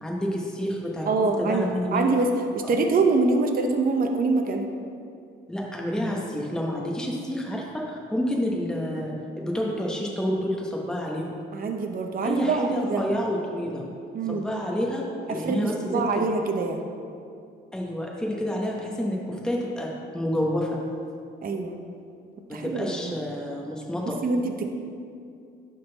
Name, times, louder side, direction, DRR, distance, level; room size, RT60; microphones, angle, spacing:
voice 1, 0.0-1.1 1.4-2.1 2.6-2.7 5.5-11.3 12.2-13.9 14.3-16.2 17.7-20.8 22.5-24.2, equal, 5° left, -2 dB, 1.0 m, -29 dB
voice 2, 1.1-4.7 11.5-13.0 14.1-14.4 15.3-16.8 21.4-21.8 22.5-23.1 24.2-24.7, right 3 dB, 45° right, 4 dB, 0.7 m, -25 dB
11.5 x 3.9 x 4.0 m, 2.4 s
cardioid pair, 90°, 20 cm